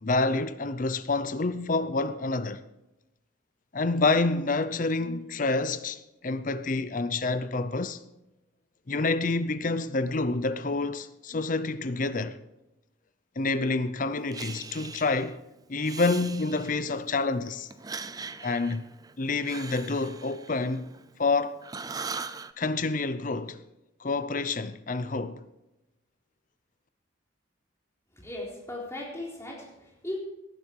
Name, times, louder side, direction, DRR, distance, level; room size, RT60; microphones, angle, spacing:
voice 1, 0.0-2.6 3.7-8.0 8.9-12.4 13.4-15.4 15.7-17.7 18.4-18.9 19.2-20.9 21.2-21.6 22.6-23.6 24.0-25.4, left 3 dB, 40° left, 0.6 m, -28 dB
Breathing, 14.3-15.3 15.8-17.0 17.7-21.3 21.6-22.5, right 5 dB, 20° right, 0.5 m, -40 dB
voice 2, 28.1-30.2, left 1 dB, 15° left, 3.8 m, -37 dB
18.5 x 11.0 x 4.7 m
head